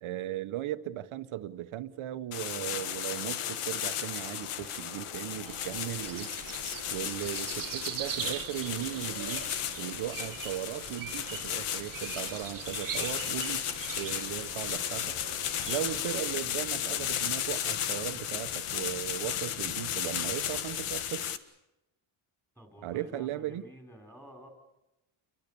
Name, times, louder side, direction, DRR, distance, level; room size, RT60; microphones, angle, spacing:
voice 1, 0.0-6.3 6.9-9.5 9.8-13.7 13.9-15.2 15.7-21.3 22.8-23.6, right 12 dB, 70° right, 11 dB, 1.3 m, -37 dB
sound 1, 2.3-21.4, left 10 dB, 80° left, 1.7 m, -35 dB
sound 2, 5.4-16.2, right 10 dB, 40° right, 0.9 m, -42 dB
voice 2, 22.6-24.5, equal, 5° left, 4 dB, 5.7 m, -50 dB
30.0 x 23.0 x 7.0 m, 0.95 s
cardioid pair, 180°, 50 cm